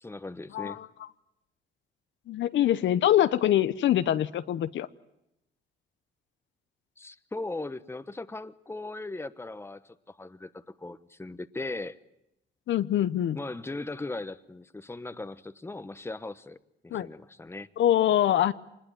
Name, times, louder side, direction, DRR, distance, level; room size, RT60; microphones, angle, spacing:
voice 1, 0.0-0.8 7.0-12.0 13.3-16.6 16.8-17.7, left 2 dB, 10° left, 1.1 m, -38 dB
voice 2, 0.5-0.9 2.3-4.9 12.7-13.4 16.9-17.1 17.8-18.5, left 11 dB, 70° left, 0.9 m, -24 dB
25.5 x 20.5 x 9.2 m
cardioid pair, 90°, 20 cm